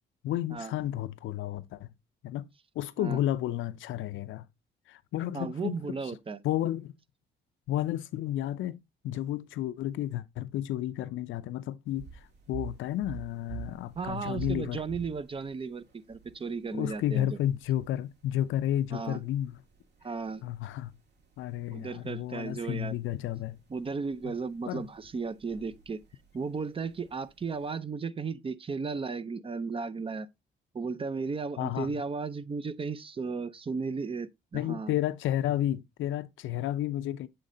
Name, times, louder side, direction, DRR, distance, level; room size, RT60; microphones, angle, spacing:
voice 1, 0.2-1.9 2.2-2.4 2.8-4.5 4.9-5.8 6.4-6.9 7.7-8.8 9.0-12.1 12.5-14.8 16.7-19.6 20.4-20.9 21.4-23.6 24.2-24.3 24.7-24.8 31.6-32.0 34.5-37.3, left 12 dB, 80° left, 0.5 m, -32 dB
voice 2, 5.3-6.4 14.0-17.4 18.9-19.2 20.0-20.4 21.7-22.9 23.7-26.0 26.3-30.3 30.7-34.9, right 4 dB, 25° right, 0.5 m, -35 dB
sound 1, 11.9-27.7, right 8 dB, 60° right, 2.3 m, -49 dB
7.7 x 3.2 x 3.8 m
cardioid pair, 90°, 20 cm